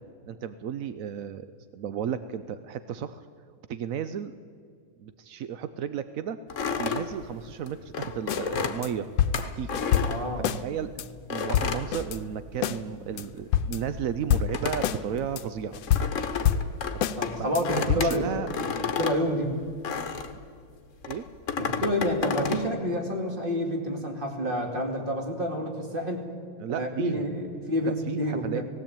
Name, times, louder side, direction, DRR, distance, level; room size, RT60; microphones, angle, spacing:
voice 1, 0.3-1.5 1.7-3.2 3.7-4.3 5.0-6.4 6.8-9.1 9.4-9.7 10.5-11.0 11.3-15.8 16.9-17.0 17.4-18.5 21.1-21.3 26.6-27.2 28.1-28.6, right 8 dB, 70° right, 11 dB, 0.8 m, -33 dB
sound 1, 6.5-10.8 11.3-12.8 13.0-20.4 21.0-22.7, left 6 dB, 45° left, 1.4 m, -32 dB
sound 2, 8.3-8.4 8.8-8.9 9.2-10.6 11.0-11.1 11.4-12.2 12.6-12.8 13.2-13.3 13.5-14.0 14.3-15.0 15.4-15.5 15.7-17.2 17.5-17.6 17.9-18.2, left 9 dB, 75° left, 1.4 m, -27 dB
voice 2, 10.0-10.5 17.2-19.6 21.6-26.2 26.7-28.6, equal, 25° right, 2 dB, 2.6 m, -29 dB
18.5 x 16.5 x 8.9 m, 2.1 s
omnidirectional pair, 2.1 m